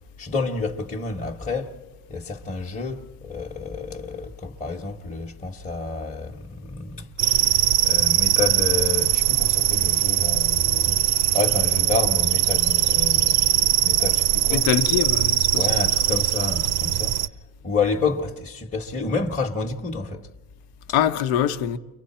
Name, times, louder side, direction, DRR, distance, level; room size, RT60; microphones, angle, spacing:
voice 1, 0.2-1.8 2.1-11.0 11.3-14.7 15.5-17.2 17.6-20.3, left 4 dB, 20° left, 1.1 m, -29 dB
sound 1, 7.2-17.3, right 14 dB, 70° right, 0.7 m, -21 dB
voice 2, 14.5-15.7 20.9-21.8, left 10 dB, 75° left, 1.0 m, -23 dB
29.5 x 23.5 x 4.3 m
supercardioid pair, 100°, 40 cm